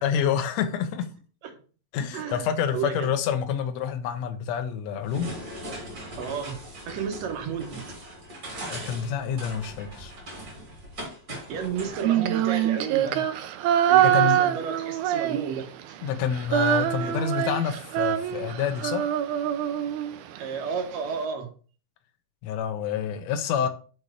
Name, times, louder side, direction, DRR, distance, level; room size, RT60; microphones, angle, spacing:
voice 1, 0.0-1.1 1.9-5.3 8.7-10.1 14.0-14.4 16.0-19.1 22.4-23.7, left 8 dB, 70° left, 1.8 m, -28 dB
voice 2, 2.1-3.1 6.2-6.6 6.9-7.8 11.5-13.2 13.9-16.0 17.0-17.1 20.4-21.5, right 6 dB, 65° right, 2.1 m, -32 dB
sound 1, 5.0-12.0, right 1 dB, 35° right, 2.6 m, -40 dB
Female singing, 11.9-15.8 16.1-20.4, right 11 dB, 80° right, 1.8 m, -24 dB
5.5 x 4.4 x 4.9 m
omnidirectional pair, 3.8 m